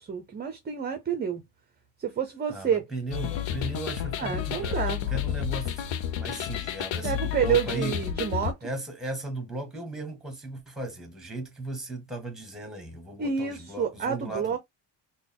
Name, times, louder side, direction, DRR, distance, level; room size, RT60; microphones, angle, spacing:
voice 1, 0.0-1.4 2.0-2.8 4.2-5.0 7.0-8.6 13.2-14.6, right 7 dB, 20° right, 0.5 m, -29 dB
voice 2, 2.5-5.8 6.2-8.0 8.6-14.6, right 2 dB, ahead, 1.0 m, -36 dB
sound 1, 3.1-8.5, left 10 dB, 80° left, 0.7 m, -31 dB
3.9 x 2.2 x 3.5 m
cardioid pair, 155°, 45 cm